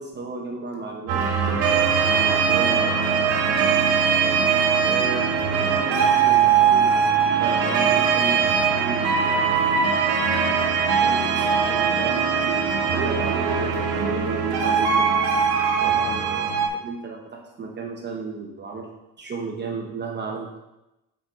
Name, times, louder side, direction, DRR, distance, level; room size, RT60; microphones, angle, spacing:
voice 1, 0.0-3.9 4.8-9.5 11.0-15.1 15.8-18.9 19.2-20.6, right 4 dB, 30° right, 1 dB, 1.0 m, -34 dB
sound 1, 1.1-16.7, right 6 dB, 85° right, 1.4 m, -21 dB
7.8 x 5.3 x 4.3 m, 0.95 s
cardioid pair, 140°, 38 cm